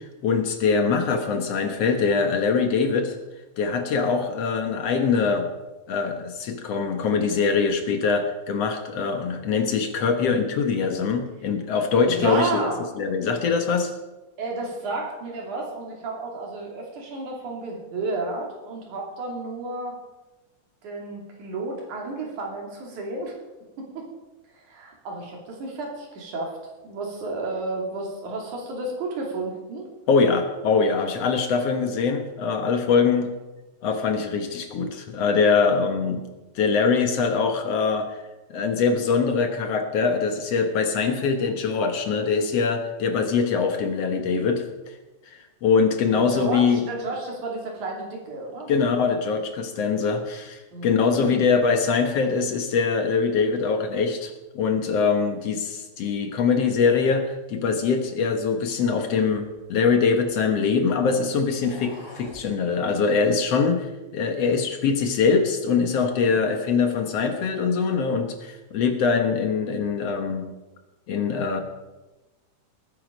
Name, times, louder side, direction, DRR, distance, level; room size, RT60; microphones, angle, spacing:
voice 1, 0.2-3.2 3.6-5.5 5.9-12.7 13.0-13.9 30.1-33.3 33.8-36.3 36.6-38.2 38.5-44.6 45.6-46.8 48.7-63.9 64.1-70.5 71.1-71.6, left 5 dB, 60° left, 5 dB, 2.1 m, -23 dB
voice 2, 12.0-12.8 14.4-20.0 20.8-23.4 23.8-24.1 24.6-26.6 26.8-29.9 46.1-48.7 50.7-51.5 66.2-66.4, right 3 dB, 80° right, 0 dB, 4.3 m, -32 dB
sound 1, 59.4-60.7 61.5-62.5, equal, 10° right, 2.6 m, -46 dB
19.0 x 9.6 x 5.2 m, 1.1 s
omnidirectional pair, 3.4 m